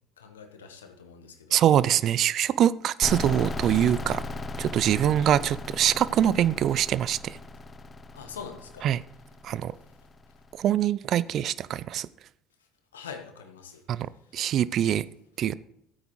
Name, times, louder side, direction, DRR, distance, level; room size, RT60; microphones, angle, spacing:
voice 1, 0.2-1.7 8.1-8.9 12.9-13.8, left 6 dB, 85° left, 5 dB, 1.2 m, -43 dB
voice 2, 1.5-4.2 4.6-7.4 8.8-9.0 9.4-9.7 10.6-12.1 13.9-15.0 15.4-15.5, right 10 dB, 55° right, 18 dB, 0.4 m, -24 dB
sound 1, 3.0-10.6, left 2 dB, 30° left, 0.6 m, -37 dB
15.5 x 8.8 x 3.1 m, 0.80 s
hypercardioid pair, 60°, 0 cm